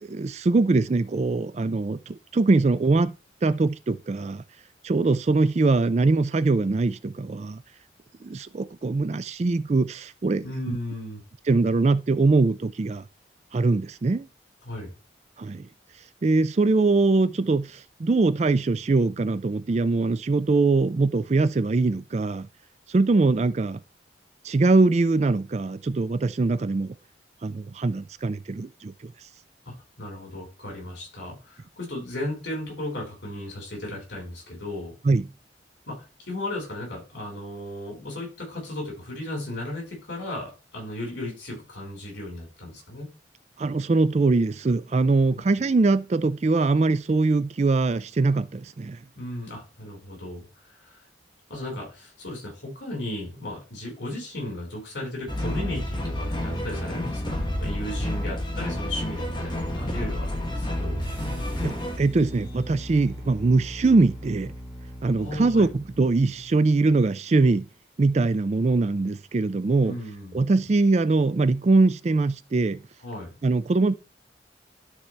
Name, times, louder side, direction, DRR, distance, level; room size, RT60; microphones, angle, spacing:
voice 1, 0.0-3.1 3.4-4.4 4.8-7.6 8.2-10.8 11.5-13.0 13.5-14.3 15.4-15.6 16.2-22.5 22.9-23.8 24.4-26.9 27.4-29.1 35.1-35.3 43.6-49.0 61.6-64.5 65.0-67.7 68.0-69.9 70.3-72.8 73.4-74.0, right 3 dB, 35° right, 0.4 m, -22 dB
voice 2, 10.4-11.2 14.6-14.9 29.6-34.9 35.9-43.1 45.3-45.4 49.1-51.0 51.5-61.0 65.2-65.7 69.8-70.5 73.0-73.3, left 1 dB, 70° left, 4.8 m, -35 dB
sound 1, 55.3-62.0, left 1 dB, 25° left, 1.1 m, -29 dB
sound 2, 61.0-67.1, equal, 10° right, 2.9 m, -40 dB
12.0 x 4.3 x 3.3 m
head